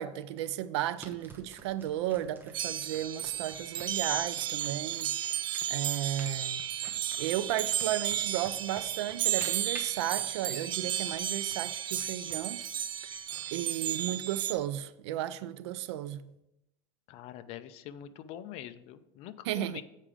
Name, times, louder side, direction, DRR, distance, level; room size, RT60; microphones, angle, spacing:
voice 1, 0.0-5.1 5.7-6.6 7.2-12.6 13.5-16.3 19.4-19.8, right 12 dB, 90° right, 0.4 m, -34 dB
sound 1, 1.0-13.7, right 2 dB, 15° right, 1.0 m, -52 dB
sound 2, 2.5-14.5, right 10 dB, 35° right, 0.5 m, -33 dB
voice 2, 17.1-19.8, left 11 dB, 50° left, 0.5 m, -44 dB
7.5 x 4.9 x 4.9 m
supercardioid pair, 145°, 14 cm